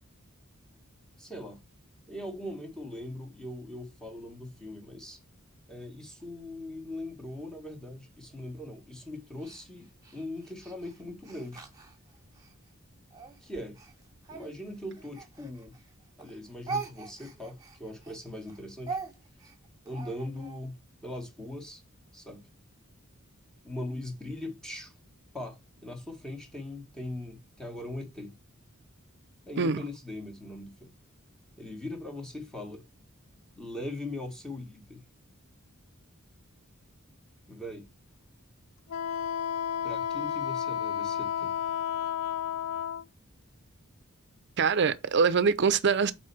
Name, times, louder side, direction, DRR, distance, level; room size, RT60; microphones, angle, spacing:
voice 1, 1.2-1.6 2.1-5.2 5.7-11.6 13.4-13.8 14.3-15.7 16.2-19.0 19.8-21.8 22.1-22.5 23.6-24.9 25.3-28.3 29.4-30.9 31.6-32.8 33.5-35.0 37.5-37.9 39.8-41.5, left 1 dB, 5° left, 1.6 m, -40 dB
Speech, 9.4-12.5 13.1-15.9 16.2-20.6, right 4 dB, 20° right, 1.7 m, -42 dB
Wind instrument woodwind instrument, 38.9-43.0, left 9 dB, 75° left, 0.4 m, -32 dB
voice 2, 44.6-46.1, right 5 dB, 55° right, 0.6 m, -24 dB
4.7 x 4.3 x 5.9 m
head